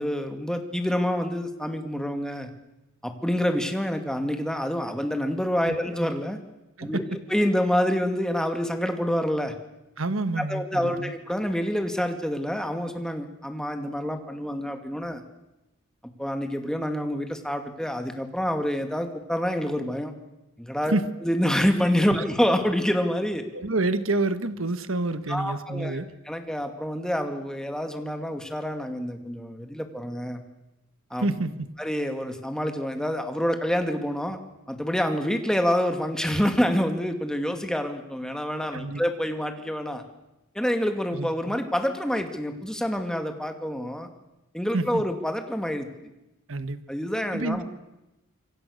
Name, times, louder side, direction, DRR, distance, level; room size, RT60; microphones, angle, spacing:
voice 1, 0.0-2.5 3.0-6.4 6.8-7.0 7.3-9.5 10.4-15.2 16.2-20.1 20.6-21.0 21.2-23.4 25.3-30.4 31.1-31.3 31.8-34.4 34.7-40.0 40.5-44.1 44.5-45.9 46.9-47.6, equal, 5° left, 5 dB, 2.3 m, -27 dB
voice 2, 10.0-11.1 20.9-21.0 23.5-26.1 31.2-31.7 38.7-39.0 41.1-41.6 44.7-45.0 46.5-46.8 47.3-47.6, right 2 dB, 70° right, 11 dB, 1.4 m, -28 dB
27.0 x 23.5 x 6.6 m, 0.96 s
head